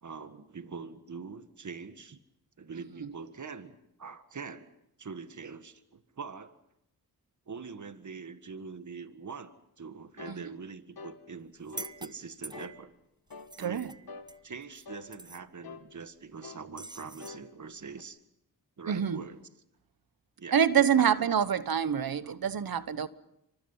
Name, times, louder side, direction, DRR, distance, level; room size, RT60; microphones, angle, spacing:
voice 1, 0.0-2.2 2.6-4.7 5.0-6.6 7.5-12.9 13.6-14.0 14.4-18.2 18.8-19.4 20.4-21.3 22.2-22.4, right 5 dB, 50° right, 1.8 m, -44 dB
sound 1, 10.2-10.4 11.0-11.2 11.7-12.0 12.5-12.8 13.3-13.5 14.1-14.3 14.9-15.1 15.6-15.9 16.4-16.7 17.2-17.4 18.0-18.1, left 4 dB, 75° left, 1.7 m, -45 dB
sound 2, 11.6-12.9 13.3-14.9 15.1-15.4 16.8-17.4, right 2 dB, 10° right, 0.9 m, -45 dB
voice 2, 13.6-13.9 18.9-19.2 20.5-23.1, right 8 dB, 70° right, 1.2 m, -26 dB
28.0 x 25.5 x 5.7 m
cardioid pair, 65°, 37 cm